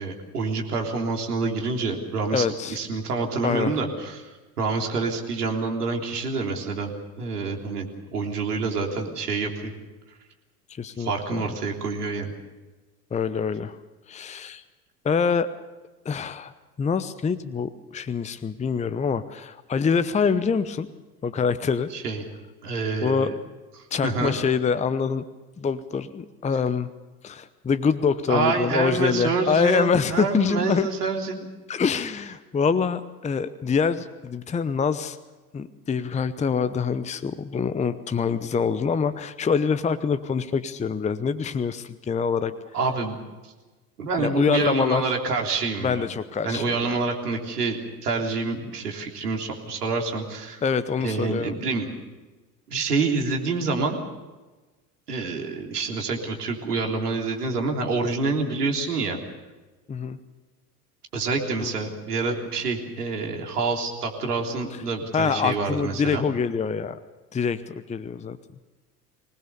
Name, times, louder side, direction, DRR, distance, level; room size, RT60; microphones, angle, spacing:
voice 1, 0.0-6.9 7.2-9.7 11.0-12.3 21.9-22.3 22.6-23.3 24.0-24.3 28.3-31.5 42.7-43.2 43.4-43.5 44.0-46.1 46.4-50.6 51.0-51.9 52.7-54.0 55.1-59.2 61.1-66.3, right 4 dB, 80° right, 1 dB, 3.5 m, -27 dB
voice 2, 2.3-2.8 3.4-3.7 10.8-11.5 13.1-13.8 14.1-14.6 15.0-15.5 16.0-16.5 16.8-20.9 21.2-21.9 23.0-23.3 23.9-25.2 25.6-26.9 27.2-30.9 31.7-35.2 35.5-42.5 44.2-45.0 45.8-46.7 50.6-51.6 59.9-60.2 61.6-61.7 65.1-67.0 67.3-68.4, left 6 dB, 15° left, 14 dB, 0.8 m, -25 dB
25.5 x 19.5 x 6.9 m, 1.2 s
figure-of-eight pair, 75°, 46 cm